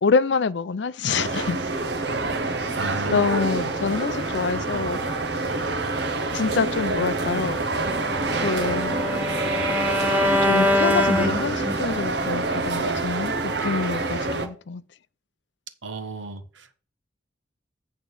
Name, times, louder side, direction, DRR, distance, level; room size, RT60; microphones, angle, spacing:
voice 1, 0.0-1.6 2.6-2.8 3.1-5.0 6.3-7.6 8.4-9.0 10.4-14.8, left 5 dB, 70° left, 0.5 m, -26 dB
sound 1, 1.1-14.5, right 3 dB, 60° right, 1.1 m, -27 dB
voice 2, 2.7-3.3 15.8-16.7, right 3 dB, 85° right, 1.3 m, -33 dB
Bowed string instrument, 7.8-12.0, left 1 dB, 10° right, 0.9 m, -24 dB
8.9 x 3.7 x 6.2 m
head